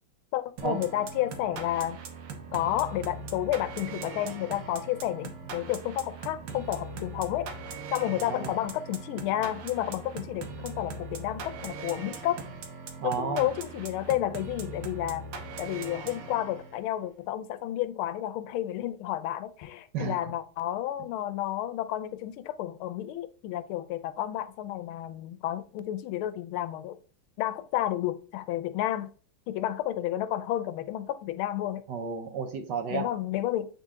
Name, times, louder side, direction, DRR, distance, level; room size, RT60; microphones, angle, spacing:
voice 1, 0.3-2.0 2.5-7.5 7.9-12.4 13.0-15.3 15.6-27.0 27.4-29.1 29.5-31.8 32.9-33.7, left 13 dB, 80° left, 1.4 m, -31 dB
sound 1, 0.6-16.9, right 4 dB, 80° right, 1.8 m, -40 dB
voice 2, 8.2-8.5 13.0-13.5 19.9-20.2 31.9-33.1, right 6 dB, 65° right, 1.2 m, -32 dB
7.8 x 4.0 x 3.6 m
omnidirectional pair, 2.3 m